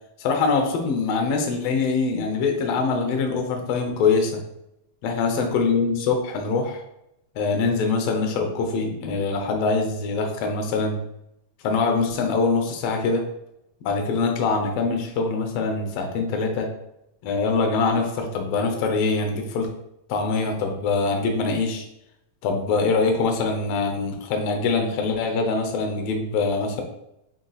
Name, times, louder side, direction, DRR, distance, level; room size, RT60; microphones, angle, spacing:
voice 1, 0.2-4.4 5.0-6.8 7.4-11.0 11.6-13.2 13.8-16.7 17.2-19.7 20.1-21.8 22.4-26.8, left 4 dB, 70° left, 3 dB, 1.6 m, -23 dB
4.5 x 2.8 x 3.9 m, 0.82 s
omnidirectional pair, 3.5 m